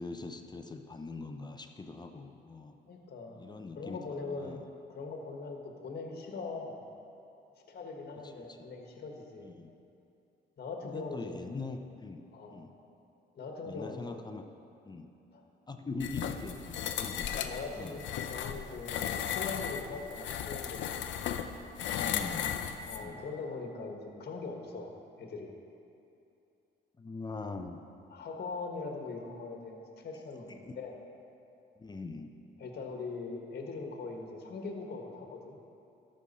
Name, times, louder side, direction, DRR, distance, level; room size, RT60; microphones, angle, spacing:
voice 1, 0.0-2.8 3.3-4.7 8.2-8.7 9.4-9.7 10.8-12.2 12.5-12.7 13.7-14.4 14.9-15.1 15.7-17.3 17.8-18.0 22.0-22.6 23.0-23.2 27.0-27.8 30.5-30.7 31.8-32.4, left 3 dB, 20° left, 6 dB, 0.6 m, -42 dB
voice 2, 2.9-3.4 3.7-4.6 4.9-6.8 7.7-9.5 10.6-11.4 12.3-12.6 13.3-14.2 15.3-15.4 17.1-21.2 22.8-24.9 25.2-25.5 28.1-30.9 32.6-35.6, left 4 dB, 55° left, 2 dB, 1.4 m, -41 dB
sound 1, 16.0-23.0, left 9 dB, 70° left, 0.6 m, -36 dB
13.5 x 6.4 x 4.2 m, 2.7 s
cardioid pair, 90°, 20 cm